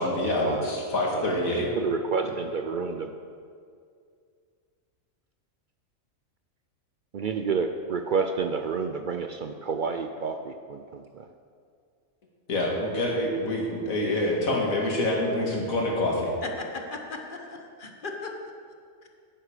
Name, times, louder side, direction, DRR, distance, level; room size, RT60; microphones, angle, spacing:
voice 1, 0.0-1.7 2.2-2.3 12.5-16.3, left 1 dB, 80° left, -1 dB, 2.3 m, -26 dB
voice 2, 1.8-3.1 7.1-11.2, right 5 dB, 70° right, 6 dB, 0.4 m, -29 dB
voice 3, 16.4-18.4 19.0-19.1, left 3 dB, 40° left, 3 dB, 1.1 m, -37 dB
10.5 x 9.8 x 4.9 m, 2.2 s
omnidirectional pair, 1.4 m